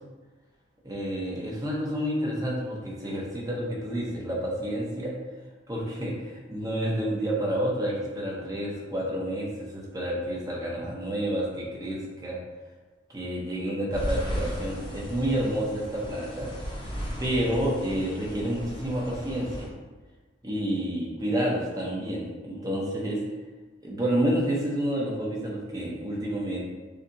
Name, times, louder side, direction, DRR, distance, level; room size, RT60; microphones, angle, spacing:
voice 1, 0.8-5.1 5.7-12.4 13.1-16.5 17.2-19.7 20.4-23.2 23.8-26.6, right 1 dB, 20° right, -4 dB, 0.7 m, -29 dB
sound 1, 13.9-19.7, equal, 25° left, 0.7 m, -35 dB
6.3 x 2.4 x 2.8 m, 1.3 s
head